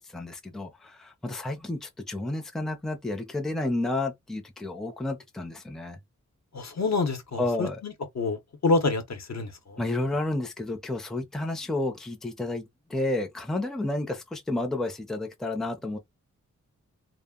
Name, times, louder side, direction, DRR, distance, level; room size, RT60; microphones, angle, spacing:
voice 1, 0.1-6.0 7.4-7.8 9.8-12.6 12.9-16.0, left 2 dB, ahead, 0.5 m, -31 dB
voice 2, 6.5-9.8, left 3 dB, 60° left, 0.8 m, -28 dB
2.1 x 2.0 x 3.6 m
wide cardioid pair, 90°, 31 cm